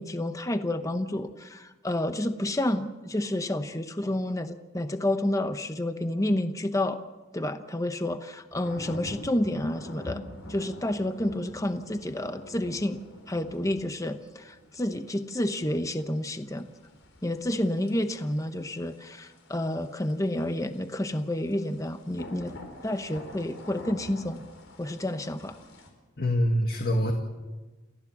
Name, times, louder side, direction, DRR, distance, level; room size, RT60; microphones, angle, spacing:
voice 1, 0.0-7.0 7.3-10.2 10.5-13.0 13.3-16.7 17.2-22.5 22.8-24.4 24.8-25.6, left 1 dB, 15° left, 9 dB, 0.8 m, -29 dB
sound 1, 8.5-25.9, left 1 dB, 80° left, 4.5 m, -46 dB
voice 2, 26.2-27.1, equal, 50° left, 3 dB, 1.8 m, -25 dB
29.0 x 15.0 x 7.4 m, 1.2 s
head